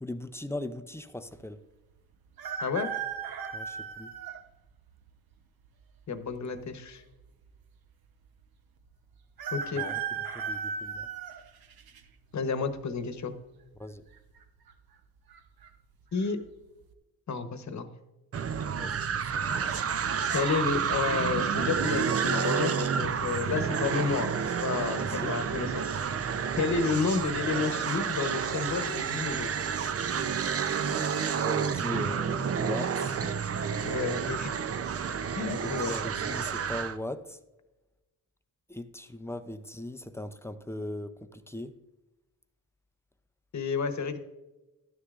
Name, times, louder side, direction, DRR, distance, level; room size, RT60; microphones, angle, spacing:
voice 1, 0.0-1.6 3.5-4.1 9.7-10.0 10.3-11.1 13.8-14.0 18.7-19.8 24.9-25.4 31.4-33.3 35.6-37.4 38.7-41.7, left 1 dB, 5° left, 0.5 m, -39 dB
sound 1, 2.4-4.4 5.1-5.2 6.3-6.9 7.2-7.3 7.5-7.6 9.4-12.0 12.5-12.9 14.1-14.4 14.7-14.8 15.3-15.7 16.1-16.3, right 6 dB, 85° right, 0.9 m, -36 dB
voice 2, 6.1-7.0 9.5-9.8 12.3-13.3 16.1-16.4 17.3-17.9 20.3-25.9 26.6-29.5 33.8-34.7 35.3-35.9 43.5-44.2, left 5 dB, 50° left, 1.0 m, -31 dB
sound 2, 18.3-37.0, right 7 dB, 40° right, 0.5 m, -30 dB
12.5 x 9.8 x 2.5 m
wide cardioid pair, 115°, 35 cm